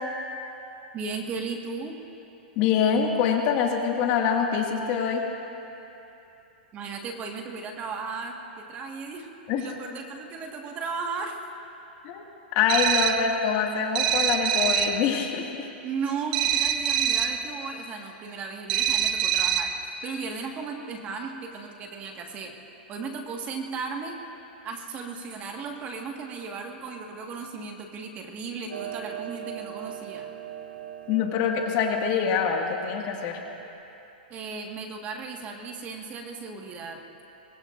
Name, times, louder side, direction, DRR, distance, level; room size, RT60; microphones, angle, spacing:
voice 1, 0.9-2.0 6.7-9.3 9.5-11.4 15.8-19.7 20.0-22.5 22.9-24.2 24.6-30.3 34.3-37.0, right 4 dB, 25° right, 2 dB, 1.7 m, -35 dB
voice 2, 2.6-5.2 9.5-9.6 12.0-12.2 12.5-15.5 31.1-33.4, left 7 dB, 40° left, 1 dB, 1.9 m, -24 dB
sound 1, 12.7-13.3 14.0-15.0 16.3-17.4 18.7-19.8, right 9 dB, 55° right, 0.8 m, -25 dB
Clock, 28.7-33.7, right 10 dB, 90° right, 1.0 m, -40 dB
23.5 x 20.5 x 2.6 m, 2.9 s
hypercardioid pair, 145°, 5 cm